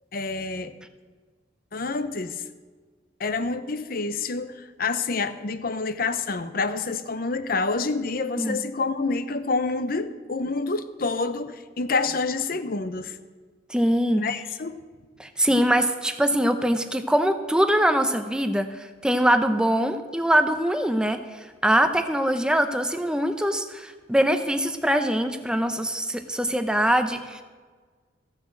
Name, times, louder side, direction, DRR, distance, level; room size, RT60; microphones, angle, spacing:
voice 1, 0.1-0.7 1.7-2.4 3.2-13.2 14.2-14.8, left 3 dB, 50° left, 12 dB, 0.7 m, -28 dB
voice 2, 13.7-14.3 15.2-27.4, equal, 5° right, 8 dB, 0.7 m, -23 dB
14.5 x 6.4 x 7.6 m, 1.5 s
head